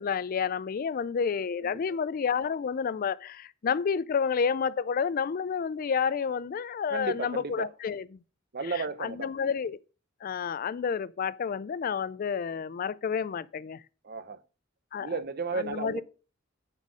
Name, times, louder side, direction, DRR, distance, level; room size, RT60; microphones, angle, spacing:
voice 1, 0.0-8.2 8.6-9.8 10.2-13.8 14.9-15.2 15.5-16.0, left 6 dB, 45° left, 0.4 m, -30 dB
voice 2, 6.9-7.7 8.5-9.3 14.0-14.4 15.0-16.0, right 4 dB, 50° right, 0.7 m, -34 dB
9.6 x 4.2 x 6.1 m
head